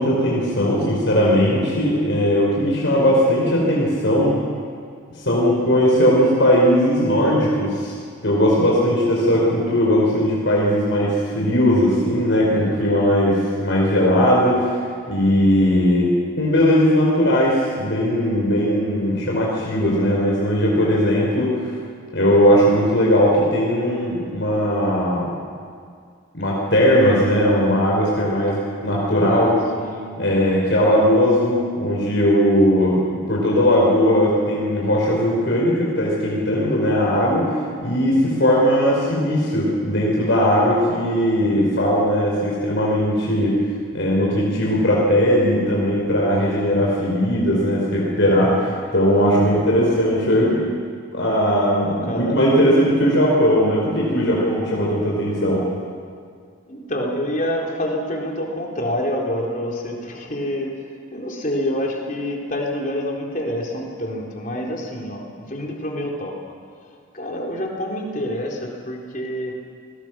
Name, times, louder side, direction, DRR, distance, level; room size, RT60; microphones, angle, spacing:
voice 1, 0.0-4.3 5.2-7.9 8.2-14.7 15.1-16.1 16.4-21.7 22.1-25.3 26.3-29.5 30.2-43.6 43.9-50.6 51.1-55.6, equal, 65° left, -4 dB, 5.1 m, -18 dB
voice 2, 28.9-30.1 49.4-50.7 51.8-52.4 56.7-60.7 61.1-66.3 67.1-69.6, left 1 dB, 40° left, -1 dB, 4.1 m, -27 dB
29.5 x 20.5 x 6.3 m, 2.2 s
head